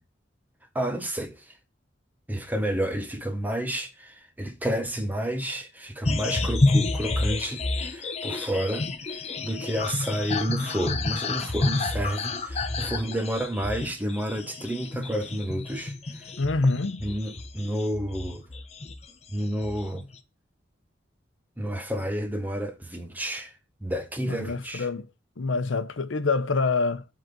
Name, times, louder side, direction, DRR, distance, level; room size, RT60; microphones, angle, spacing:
voice 1, 0.7-1.6 2.3-16.3 17.0-18.4 19.3-20.0 21.6-23.5 23.8-24.9, equal, 10° right, 0.9 m, -30 dB
sound 1, 6.0-19.1 19.4-20.1, left 2 dB, 35° left, 0.8 m, -29 dB
voice 2, 16.4-17.0 24.3-25.1 25.4-27.0, left 3 dB, 85° left, 0.7 m, -26 dB
8.0 x 3.9 x 6.0 m
head